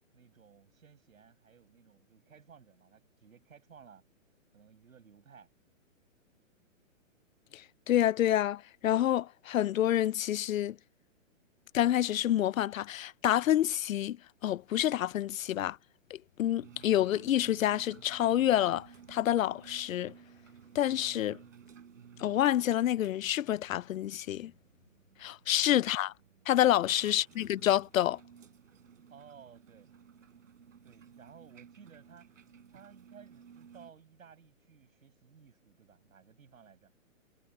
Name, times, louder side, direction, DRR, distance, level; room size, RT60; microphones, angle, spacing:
voice 1, 0.1-4.0 4.5-5.5 25.5-25.8 26.8-27.1 29.1-29.9 30.8-32.3 32.7-36.9, right 7 dB, 85° right, 7.5 m, -57 dB
voice 2, 7.9-10.8 11.7-14.2 14.4-15.8 16.1-20.1 20.7-21.4 22.2-24.5 25.2-26.1 26.5-28.2, left 12 dB, 80° left, 0.6 m, -28 dB
sound 1, 16.6-33.9, right 7 dB, 70° right, 4.5 m, -56 dB
hypercardioid pair, 175°, 40 cm